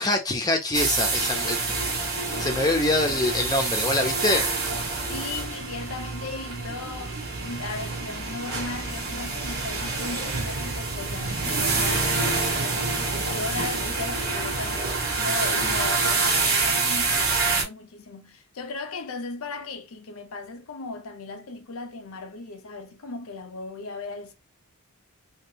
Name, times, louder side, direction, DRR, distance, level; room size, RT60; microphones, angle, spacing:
voice 1, 0.0-1.6 2.4-4.4, left 2 dB, 15° left, 0.8 m, -24 dB
sound 1, 0.7-17.6, right 3 dB, 45° right, 1.1 m, -27 dB
voice 2, 5.1-24.3, left 3 dB, 70° left, 0.6 m, -37 dB
3.2 x 2.8 x 2.7 m
head